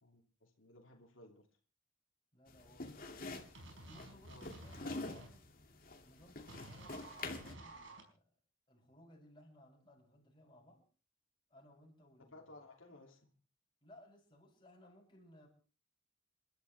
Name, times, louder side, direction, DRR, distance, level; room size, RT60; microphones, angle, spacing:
voice 1, 0.0-1.5 4.3-4.6 12.3-13.4, left 2 dB, 85° left, 1 dB, 2.8 m, -58 dB
voice 2, 2.3-3.4 3.8-5.5 6.0-8.4 8.7-10.8 11.5-12.4 13.8-15.5, left 1 dB, 25° left, -2 dB, 7.8 m, -62 dB
sound 1, 2.5-7.6, left 3 dB, 45° left, 2.5 m, -47 dB
sound 2, 3.5-5.3 6.5-8.0, right 1 dB, 70° right, 4.6 m, -52 dB
29.0 x 12.5 x 3.4 m, 0.39 s
head